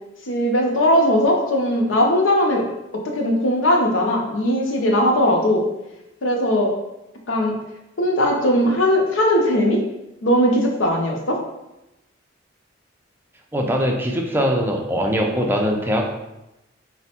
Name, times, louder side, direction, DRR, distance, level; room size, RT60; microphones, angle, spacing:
voice 1, 0.3-2.7 3.0-5.6 6.2-6.7 7.3-7.6 8.0-9.8 10.2-11.4, equal, 75° left, 1 dB, 0.6 m, -19 dB
voice 2, 13.5-16.1, equal, 10° right, 1 dB, 0.4 m, -21 dB
3.3 x 2.1 x 4.2 m, 0.94 s
head